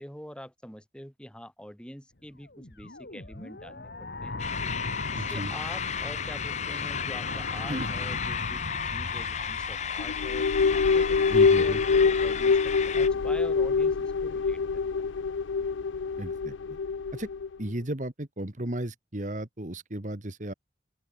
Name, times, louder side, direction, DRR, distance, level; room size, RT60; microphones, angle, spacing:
voice 1, 0.0-4.5 5.1-10.5 10.8-14.6, equal, 5° left, 3.6 m, -45 dB
sound 1, 2.5-13.4, left 3 dB, 55° left, 1.8 m, -37 dB
sound 2, 4.4-13.1, left 8 dB, 35° left, 0.7 m, -35 dB
voice 2, 5.1-5.5 7.7-7.9 11.3-11.8 16.2-16.8 17.1-17.3 17.6-20.5, right 1 dB, 40° right, 1.8 m, -34 dB
sound 3, 10.0-17.6, left 5 dB, 85° left, 0.5 m, -25 dB
open air
head